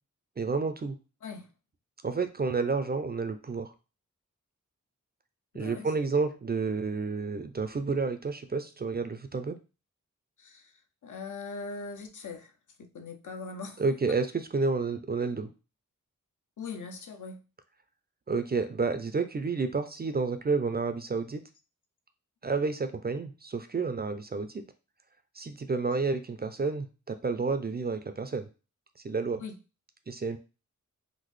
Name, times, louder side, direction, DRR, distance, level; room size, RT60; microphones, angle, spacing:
voice 1, 0.4-1.0 2.0-3.7 5.5-9.6 13.8-15.5 18.3-21.4 22.4-24.6 25.4-28.5 29.0-29.4 30.1-30.4, right 4 dB, 30° right, 9 dB, 0.4 m, -30 dB
voice 2, 5.5-5.9 10.4-10.7 11.0-12.5 12.8-13.8 16.6-17.4 29.4-29.6, left 4 dB, 70° left, 5 dB, 0.6 m, -40 dB
3.7 x 2.0 x 3.1 m, 0.32 s
wide cardioid pair, 70°, 32 cm